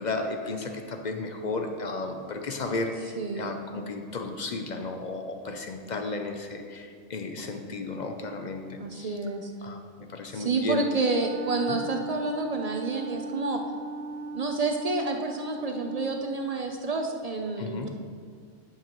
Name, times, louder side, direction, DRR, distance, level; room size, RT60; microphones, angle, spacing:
voice 1, 0.0-9.2 9.6-10.8 11.7-11.8 17.6-17.9, left 3 dB, 50° left, 5 dB, 0.5 m, -34 dB
voice 2, 3.2-3.6 8.8-9.5 10.3-13.6 14.3-17.9, right 3 dB, 55° right, 3 dB, 0.4 m, -29 dB
Wind instrument woodwind instrument, 11.0-16.4, right 3 dB, 85° right, 1.0 m, -38 dB
10.5 x 7.5 x 3.0 m, 2.1 s
omnidirectional pair, 1.3 m